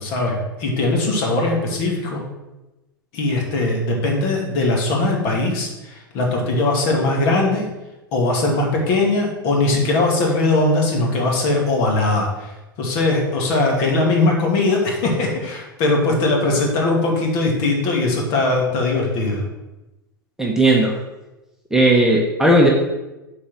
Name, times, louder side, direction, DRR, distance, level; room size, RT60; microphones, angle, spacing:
voice 1, 0.0-2.2 3.1-7.6 8.1-19.5, left 2 dB, 45° left, 0 dB, 2.6 m, -20 dB
voice 2, 20.4-20.9 21.7-22.7, right 1 dB, 5° right, -2 dB, 1.2 m, -15 dB
8.5 x 4.8 x 6.3 m, 1.0 s
figure-of-eight pair, 95°, 12 cm